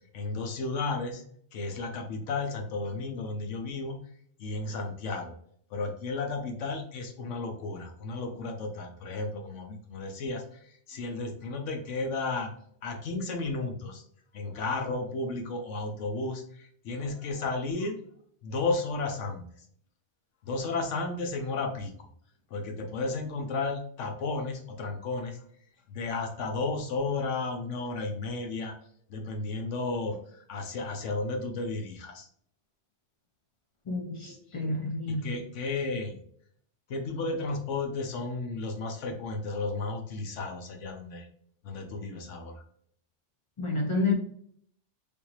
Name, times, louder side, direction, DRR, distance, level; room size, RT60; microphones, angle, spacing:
voice 1, 0.1-1.2 1.5-4.0 4.4-5.3 5.7-12.5 12.8-14.0 14.3-18.0 18.4-19.5 20.4-21.9 22.5-25.4 25.9-28.7 29.1-32.3 34.2-34.6 35.1-36.1 36.9-41.3 41.6-42.6, left 3 dB, 90° left, 4 dB, 1.1 m, -33 dB
voice 2, 33.9-35.4 43.6-44.1, left 3 dB, 45° left, 2 dB, 0.4 m, -29 dB
3.4 x 2.6 x 3.0 m, 0.62 s
omnidirectional pair, 1.2 m